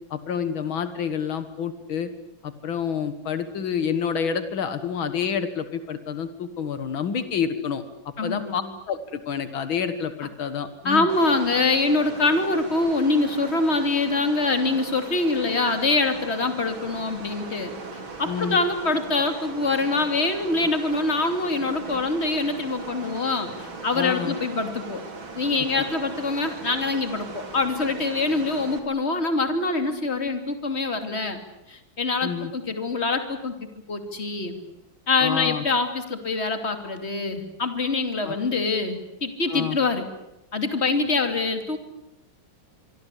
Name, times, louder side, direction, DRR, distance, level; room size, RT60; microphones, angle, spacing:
voice 1, 0.1-2.1 2.4-11.1 18.3-18.6 23.9-24.4 32.2-32.5 35.2-35.6 38.2-38.4 39.5-39.8, left 7 dB, 80° left, 11 dB, 2.3 m, -28 dB
voice 2, 8.2-8.6 10.8-25.0 25.4-31.4 31.7-33.5 33.9-34.6 35.1-40.0 40.5-41.8, left 3 dB, 30° left, 7 dB, 3.0 m, -24 dB
sound 1, 11.1-28.8, right 3 dB, 80° right, 3.9 m, -39 dB
25.5 x 24.0 x 8.3 m, 0.89 s
omnidirectional pair, 2.2 m